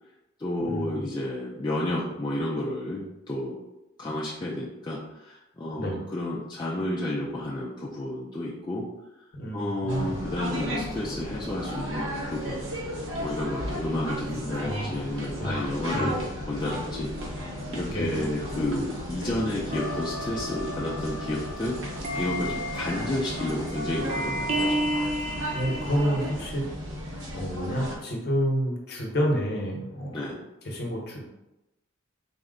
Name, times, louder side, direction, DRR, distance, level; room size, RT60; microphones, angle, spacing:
voice 1, 0.4-3.6 4.0-8.9 9.5-12.6 13.2-17.4 17.7-24.8 30.1-30.4, left 1 dB, 20° left, -5 dB, 0.4 m, -31 dB
voice 2, 9.3-10.2 14.6-14.9 15.4-15.6 15.9-16.1 17.9-18.2 25.5-26.6 27.3-30.2 30.6-31.2, equal, 50° left, -1 dB, 0.8 m, -29 dB
sound 1, 9.9-28.0, equal, 75° right, 0.9 m, -35 dB
sound 2, 19.7-26.3, equal, 35° right, 0.7 m, -32 dB
4.2 x 2.1 x 3.6 m, 0.94 s
head